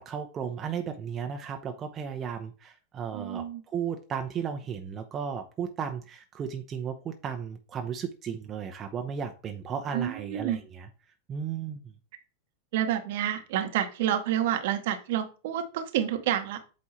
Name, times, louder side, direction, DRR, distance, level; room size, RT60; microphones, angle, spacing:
voice 1, 0.0-10.9 11.3-11.8, right 7 dB, 25° right, 5 dB, 0.6 m, -35 dB
voice 2, 3.1-3.6 9.9-10.6 12.7-16.6, right 10 dB, 55° right, 8 dB, 0.9 m, -29 dB
8.0 x 2.7 x 4.3 m, 0.35 s
figure-of-eight pair, 90°, 0 cm